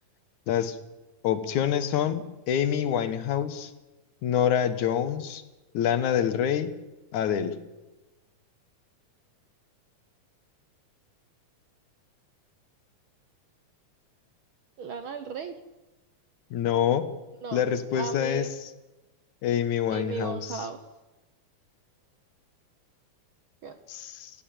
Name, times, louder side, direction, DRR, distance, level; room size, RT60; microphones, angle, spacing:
voice 1, 0.5-0.8 1.2-3.7 4.2-5.4 5.7-6.7 7.1-7.6 16.5-17.1 17.5-18.5 19.4-20.4 23.9-24.3, left 9 dB, 80° left, 12 dB, 2.8 m, -26 dB
voice 2, 14.8-15.6 17.4-17.6 17.9-18.5 19.9-20.8 23.6-23.8, right 4 dB, 60° right, 10 dB, 1.4 m, -36 dB
19.5 x 16.0 x 8.9 m, 1.1 s
omnidirectional pair, 3.4 m